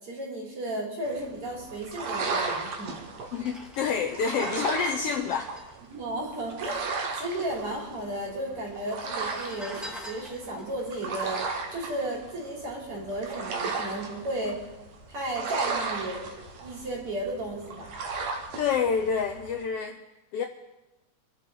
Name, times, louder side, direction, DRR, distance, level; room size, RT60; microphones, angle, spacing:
voice 1, 0.0-3.0 5.9-11.5 11.7-14.6 15.1-16.2 16.6-18.0, right 1 dB, 50° right, -3 dB, 4.5 m, -34 dB
sound 1, 1.0-19.6, right 4 dB, 65° right, 2.6 m, -36 dB
voice 2, 3.3-5.5 18.6-20.0 20.3-20.4, left 6 dB, 70° left, 5 dB, 1.5 m, -28 dB
sound 2, 3.3-7.0 7.2-7.3 7.5-8.2 8.9-12.4 12.8-13.0, equal, ahead, 1.6 m, -46 dB
27.5 x 11.0 x 3.9 m, 1.0 s
omnidirectional pair, 3.3 m